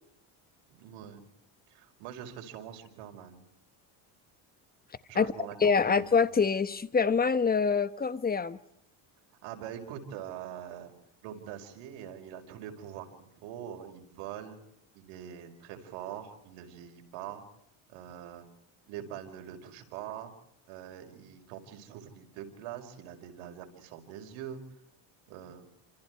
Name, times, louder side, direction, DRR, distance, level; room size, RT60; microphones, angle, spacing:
voice 1, 0.7-1.3 1.7-3.5 5.1-6.1 9.4-10.9 11.2-14.6 14.9-17.4 17.9-18.5 18.9-20.3 20.7-24.6 25.3-25.7, right 10 dB, 85° right, 5.3 m, -43 dB
voice 2, 5.6-8.6, left 5 dB, 20° left, 1.1 m, -25 dB
29.5 x 26.5 x 4.7 m
cardioid pair, 125°, 47 cm